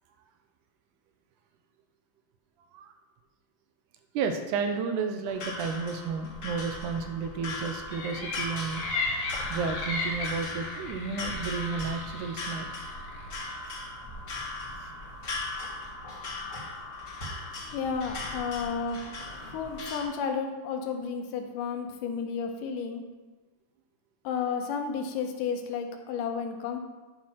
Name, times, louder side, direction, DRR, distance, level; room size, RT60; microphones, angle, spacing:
voice 1, 4.1-8.8 9.5-12.7, right 5 dB, 80° right, 6 dB, 2.0 m, -32 dB
sound 1, 5.3-20.1, left 2 dB, 45° left, 1.0 m, -38 dB
sound 2, 7.9-13.3, left 3 dB, 60° left, 2.2 m, -35 dB
voice 2, 17.7-19.0 19.5-23.0 24.2-26.8, left 6 dB, 85° left, 4 dB, 2.3 m, -32 dB
9.3 x 4.4 x 5.7 m, 1.3 s
omnidirectional pair, 3.8 m